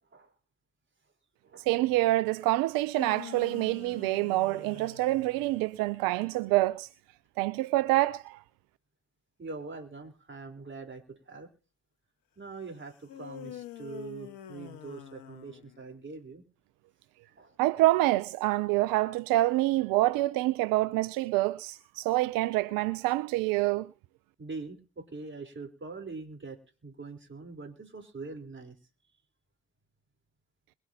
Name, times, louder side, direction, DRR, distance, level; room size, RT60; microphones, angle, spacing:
voice 1, 1.5-6.9 7.4-8.4 17.6-23.9, right 17 dB, 75° right, 0.5 m, -26 dB
sound 1, 2.7-5.9 13.1-16.0, left 11 dB, 75° left, 1.4 m, -46 dB
voice 2, 9.4-11.5 12.4-16.4 17.3-17.6 24.4-28.8, right 3 dB, 35° right, 4.0 m, -43 dB
22.5 x 8.2 x 2.8 m
hypercardioid pair, 55°, 34 cm